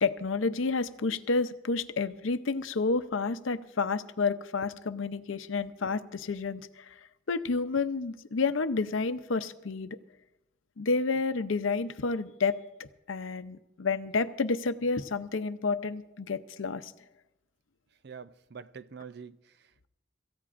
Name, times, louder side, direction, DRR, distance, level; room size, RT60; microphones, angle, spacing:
voice 1, 0.0-7.0 7.3-10.0 10.8-16.9, left 4 dB, 85° left, 0.6 m, -30 dB
voice 2, 18.0-19.9, right 6 dB, 55° right, 0.5 m, -46 dB
26.0 x 14.5 x 2.5 m
head